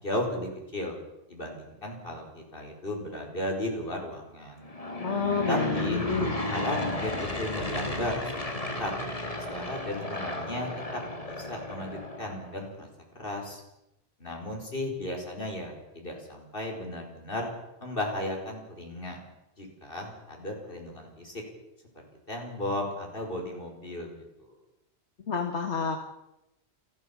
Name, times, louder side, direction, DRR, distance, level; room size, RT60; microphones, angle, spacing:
voice 1, 0.0-1.0 1.3-4.7 5.5-6.0 6.5-8.9 9.5-11.0 11.3-12.9 13.2-13.6 14.2-17.5 17.8-19.2 19.6-21.3 22.3-24.5, left 1 dB, 55° left, 1 dB, 5.3 m, -35 dB
Aircraft / Engine, 4.6-12.6, left 1 dB, 30° left, 2.5 m, -33 dB
voice 2, 5.0-6.4 25.3-26.0, left 5 dB, 85° left, 5 dB, 1.9 m, -29 dB
29.0 x 12.5 x 7.3 m, 0.88 s
omnidirectional pair, 1.1 m